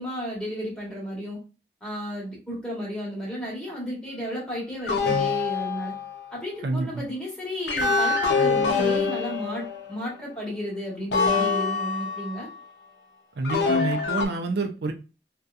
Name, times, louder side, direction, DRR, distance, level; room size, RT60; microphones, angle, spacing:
voice 1, 0.0-1.4 1.8-5.9 6.3-12.5, equal, 5° left, 1.1 m, -33 dB
sound 1, 4.9-6.3 7.7-10.0 11.1-12.5 13.4-14.3, left 4 dB, 80° left, 0.5 m, -25 dB
voice 2, 6.6-7.0 13.4-14.9, right 3 dB, 75° right, 0.4 m, -28 dB
2.7 x 2.2 x 2.3 m
head